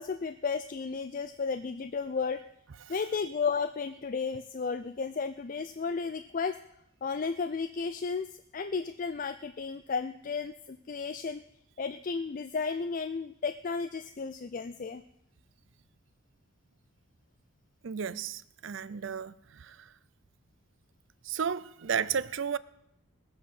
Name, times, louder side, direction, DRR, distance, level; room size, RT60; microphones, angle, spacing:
voice 1, 0.0-2.4 2.9-6.6 7.0-11.4 11.8-15.0, left 5 dB, 40° left, 0.4 m, -33 dB
voice 2, 17.8-19.8 21.2-22.6, right 7 dB, 60° right, 0.5 m, -33 dB
20.0 x 8.1 x 5.4 m
head